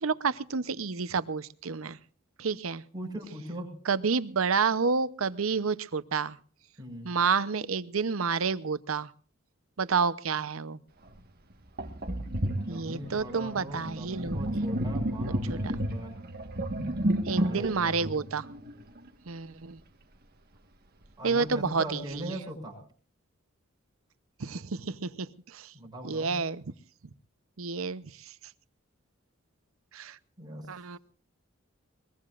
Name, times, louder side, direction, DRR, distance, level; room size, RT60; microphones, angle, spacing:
voice 1, 0.0-2.0 2.4-2.8 3.9-6.4 7.0-9.1 9.8-10.8 12.7-14.6 15.5-15.6 17.3-18.4 19.3-19.8 21.2-22.0 24.4-25.7 26.0-26.6 27.6-28.0 29.9-30.2 30.7-31.0, right 5 dB, 90° right, 15 dB, 0.8 m, -29 dB
voice 2, 2.9-3.7 6.8-7.1 12.7-16.2 17.3-18.1 21.2-22.8 25.7-26.4 30.4-30.7, right 1 dB, 20° right, 0 dB, 6.8 m, -40 dB
Sink (filling or washing), 11.1-11.2 11.8-19.1, right 1 dB, 50° right, 1.5 m, -32 dB
22.5 x 21.5 x 2.5 m, 0.42 s
head